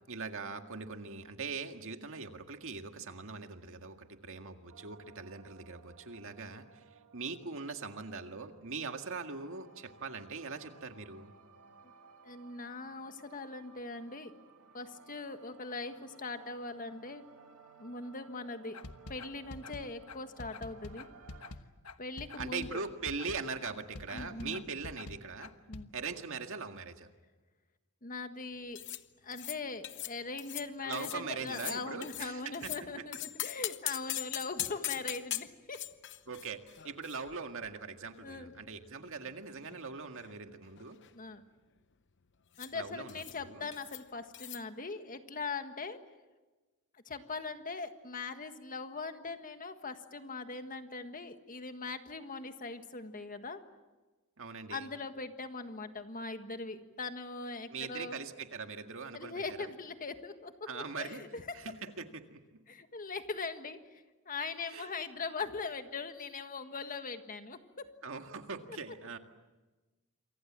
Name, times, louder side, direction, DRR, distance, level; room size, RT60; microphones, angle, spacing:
voice 1, 0.1-6.8 7.1-11.3 22.4-25.5 25.9-27.1 30.8-32.7 36.3-41.0 42.7-43.7 54.4-54.9 57.7-59.7 60.7-61.2 61.5-62.6 64.7-64.9 68.0-69.2, right 4 dB, 65° right, 6 dB, 1.9 m, -41 dB
sound 1, 4.7-21.5, right 5 dB, 85° right, 2.2 m, -59 dB
voice 2, 12.2-14.3 14.7-17.3 17.8-18.8 19.1-21.1 22.0-22.8 24.1-24.6 25.7-25.9 28.0-28.8 29.2-35.8 38.2-38.5 41.1-41.4 42.6-46.0 47.0-53.6 54.7-58.2 59.1-61.7 62.7-67.9 68.7-68.8, left 4 dB, 40° left, 8 dB, 1.6 m, -41 dB
sound 2, 18.7-25.8, left 3 dB, 75° left, 1.3 m, -46 dB
sound 3, 28.7-29.0 29.3-29.6 29.8-30.1 30.4-30.7 30.9-31.2 31.5-32.8 33.1-37.8 38.1-38.2 38.9-39.8 40.1-40.4 40.6-41.1 42.5-42.7 43.1-43.4 43.7-44.0 44.3-44.6, left 14 dB, 55° left, 0.9 m, -41 dB
28.0 x 24.5 x 7.5 m, 1.2 s
head